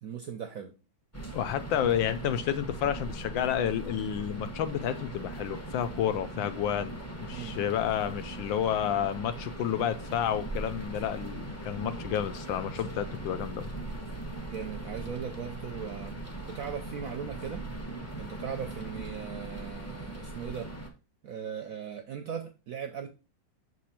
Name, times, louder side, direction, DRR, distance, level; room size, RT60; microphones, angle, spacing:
voice 1, 0.0-0.7 7.3-7.5 14.4-16.1 16.5-17.6 18.1-20.7 21.2-23.1, right 8 dB, 70° right, 0.8 m, -38 dB
sound 1, 1.1-20.9, right 2 dB, 15° left, 0.6 m, -40 dB
voice 2, 1.3-13.7, left 9 dB, 80° left, 1.3 m, -30 dB
6.3 x 4.2 x 4.2 m
omnidirectional pair, 2.1 m